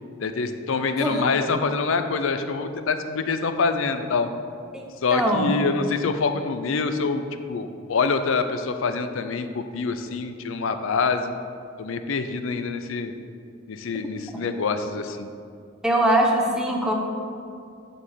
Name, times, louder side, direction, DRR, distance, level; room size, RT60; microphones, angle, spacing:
voice 1, 0.2-4.3 5.0-11.3 11.8-13.1 13.7-15.3, left 4 dB, 65° left, 9 dB, 0.5 m, -25 dB
voice 2, 5.1-5.5 15.8-16.9, right 1 dB, 5° right, 0 dB, 0.8 m, -21 dB
7.2 x 4.4 x 6.7 m, 2.5 s
head